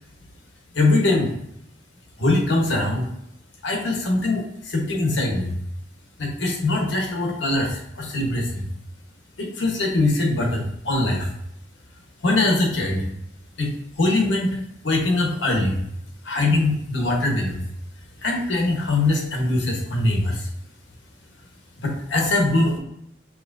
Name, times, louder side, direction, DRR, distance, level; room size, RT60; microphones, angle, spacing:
voice 1, 0.7-1.3 2.2-3.0 3.6-5.5 6.2-8.7 9.4-11.3 12.2-13.0 13.6-14.6 14.8-15.8 16.2-17.6 18.2-20.4 21.8-22.8, left 2 dB, 85° left, 1 dB, 1.2 m, -22 dB
5.8 x 3.2 x 2.6 m, 0.77 s
head